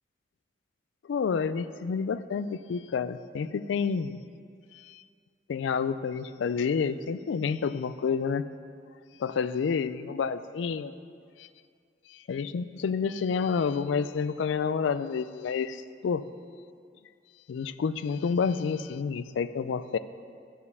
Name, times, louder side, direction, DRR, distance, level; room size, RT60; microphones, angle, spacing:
voice 1, 1.1-4.2 4.8-5.0 5.5-8.5 9.2-11.0 11.4-11.5 12.1-16.3 17.5-20.0, left 6 dB, 75° left, 14 dB, 0.3 m, -29 dB
11.0 x 4.3 x 7.0 m, 2.2 s
head